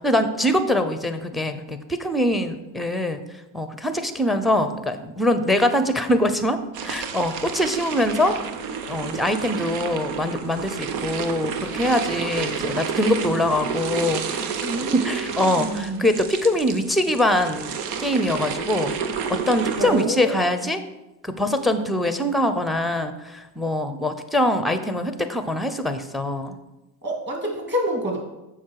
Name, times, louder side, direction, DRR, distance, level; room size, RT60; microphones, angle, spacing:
voice 1, 0.0-3.2 3.5-8.4 8.9-14.5 14.9-19.0 19.3-20.8 21.2-26.6, left 1 dB, ahead, 10 dB, 0.6 m, -23 dB
sound 1, 6.7-20.0, right 6 dB, 80° right, 1.0 m, -30 dB
voice 2, 14.6-16.0 19.8-20.5 27.0-28.2, right 1 dB, 20° right, 0 dB, 2.5 m, -28 dB
7.3 x 5.7 x 4.8 m, 0.98 s
supercardioid pair, 90°, 48 cm